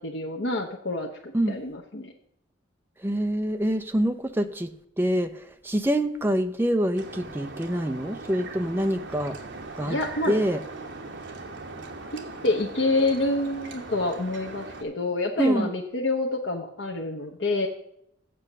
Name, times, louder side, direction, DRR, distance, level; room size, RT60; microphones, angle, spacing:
voice 1, 0.0-2.1 9.8-10.4 12.4-17.7, left 2 dB, 75° left, 1 dB, 0.9 m, -27 dB
voice 2, 3.0-4.7 5.0-9.4 9.8-10.0 10.3-10.6 15.4-15.7, right 1 dB, 10° right, 8 dB, 0.6 m, -25 dB
sound 1, 7.0-14.8, right 3 dB, 75° right, 1.2 m, -40 dB
7.7 x 7.2 x 6.6 m, 0.74 s
head